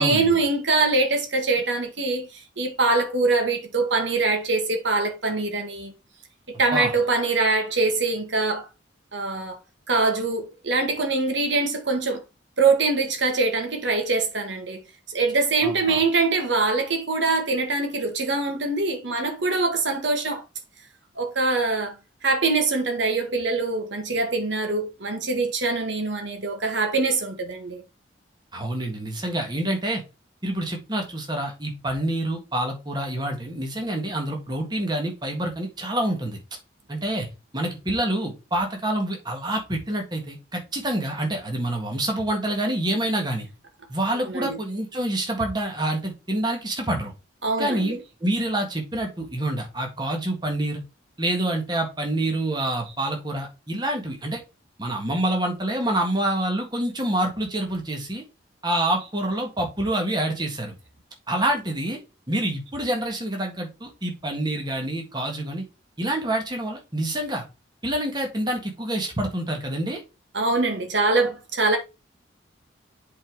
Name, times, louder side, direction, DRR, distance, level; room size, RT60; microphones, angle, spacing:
voice 1, 0.0-5.9 6.6-8.7 9.1-9.6 9.9-12.2 12.6-14.8 15.1-20.4 21.2-22.0 22.2-27.8 44.1-44.6 47.4-48.0 70.3-71.8, right 3 dB, 65° right, 1.8 m, -23 dB
voice 2, 15.6-16.0 28.5-30.0 30.4-36.4 36.9-37.3 37.5-43.5 43.9-47.1 47.6-50.8 51.2-54.4 54.8-58.2 58.6-60.7 61.3-62.0 62.3-65.6 66.0-67.4 67.8-70.0, right 1 dB, 20° right, 1.7 m, -27 dB
7.8 x 4.1 x 4.7 m
head